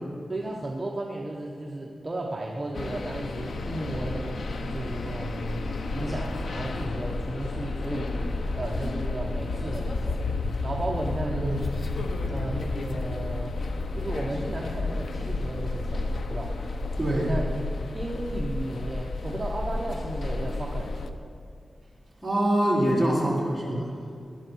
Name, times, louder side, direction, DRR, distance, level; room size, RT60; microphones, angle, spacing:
voice 1, 0.3-5.6 5.9-8.3 8.5-10.2 10.6-11.4 12.3-13.6 14.0-16.5 17.2-17.5 17.9-20.9, right 1 dB, 25° right, -2 dB, 0.9 m, -34 dB
sound 1, 2.7-21.1, left 2 dB, 85° left, 0.8 m, -31 dB
voice 2, 11.2-11.6 12.0-12.1 17.0-17.3 22.2-23.8, right 1 dB, ahead, -9 dB, 4.1 m, -25 dB
19.5 x 11.0 x 4.6 m, 2.4 s
wide cardioid pair, 165°, 0 cm